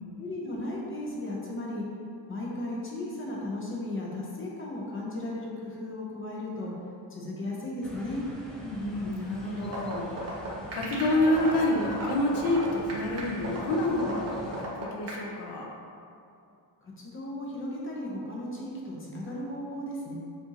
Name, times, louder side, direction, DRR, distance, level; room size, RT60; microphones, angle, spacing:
voice 1, 0.2-1.9 2.3-6.7 7.1-8.2 16.8-20.2, left 1 dB, 25° left, -4 dB, 0.7 m, -35 dB
sound 1, 7.8-14.6, equal, ahead, 0.4 m, -44 dB
voice 2, 8.6-15.7, left 1 dB, 60° left, 0 dB, 0.8 m, -28 dB
sound 2, 9.6-15.2, right 2 dB, 35° right, 0.9 m, -35 dB
7.1 x 2.6 x 2.8 m, 2.5 s
wide cardioid pair, 165°, 45 cm